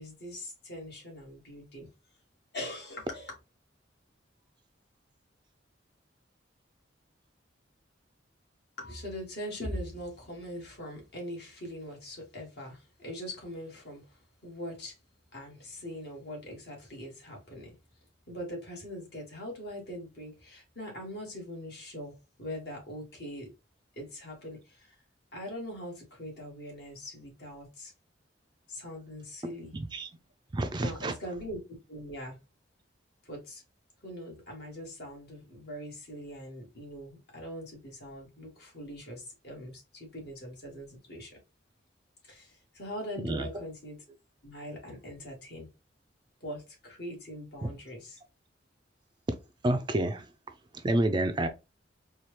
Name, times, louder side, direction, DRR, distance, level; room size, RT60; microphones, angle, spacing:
voice 1, 0.0-1.9 2.5-3.3 8.8-15.0 15.3-17.7 18.3-23.5 23.9-24.9 25.3-27.9 28.7-29.7 30.8-31.6 31.9-32.4 33.2-33.6 34.0-41.4 42.2-44.0 44.4-45.7 46.4-48.2, equal, 60° left, 1.9 m, -42 dB
voice 2, 29.7-30.1 30.5-31.1 43.2-43.5 47.6-47.7 49.6-50.3 50.7-51.5, right 1 dB, 25° right, 0.4 m, -29 dB
4.3 x 2.3 x 3.1 m
head